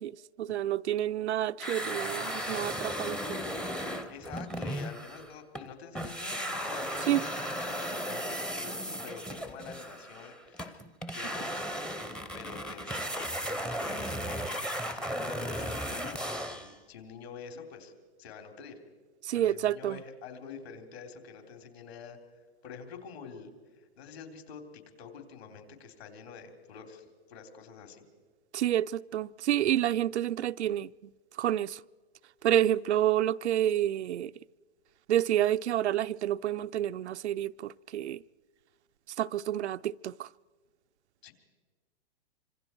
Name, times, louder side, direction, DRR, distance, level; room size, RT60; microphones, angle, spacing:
voice 1, 0.0-3.4 7.1-7.2 19.2-20.0 28.5-31.1 31.4-31.8 32.4-34.3 35.1-38.2 39.2-40.3, right 12 dB, 90° right, 0.5 m, -29 dB
sound 1, 1.6-5.7 5.9-16.7, equal, 5° left, 0.5 m, -36 dB
voice 2, 4.1-12.0 12.3-17.9 18.2-18.8 19.3-22.2 22.6-23.5 24.0-28.1 29.7-29.8 41.2-41.3, left 6 dB, 65° left, 3.6 m, -47 dB
26.0 x 26.0 x 4.6 m
hypercardioid pair, 140°, 33 cm